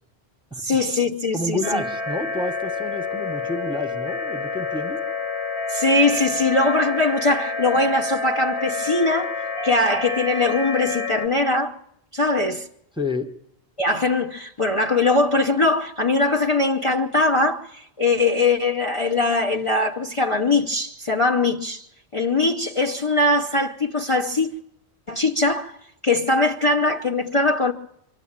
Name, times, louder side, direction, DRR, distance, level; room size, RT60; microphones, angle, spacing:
voice 1, 0.6-1.8 5.7-9.3 9.6-11.8 12.1-12.7 13.8-21.8 22.1-24.5 25.1-25.8 26.0-27.7, left 2 dB, 30° left, 0.9 m, -21 dB
voice 2, 1.3-5.0 13.0-13.3, left 2 dB, 5° right, 1.1 m, -29 dB
sound 1, 1.6-11.3, left 4 dB, 80° left, 2.9 m, -28 dB
25.0 x 12.0 x 8.8 m
omnidirectional pair, 1.1 m